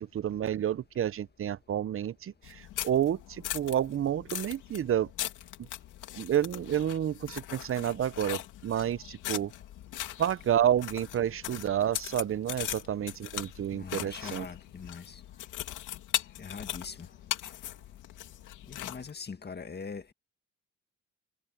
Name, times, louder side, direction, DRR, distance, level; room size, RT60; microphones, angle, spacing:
voice 1, 0.0-5.1 5.6-5.7 6.2-9.5 10.2-14.5, right 10 dB, 45° right, 0.7 m, -30 dB
sound 1, 2.4-19.1, left 13 dB, 85° left, 2.6 m, -40 dB
voice 2, 13.7-15.2 16.4-17.0 18.7-20.1, left 5 dB, 35° left, 1.9 m, -42 dB
cardioid pair, 90°, 30 cm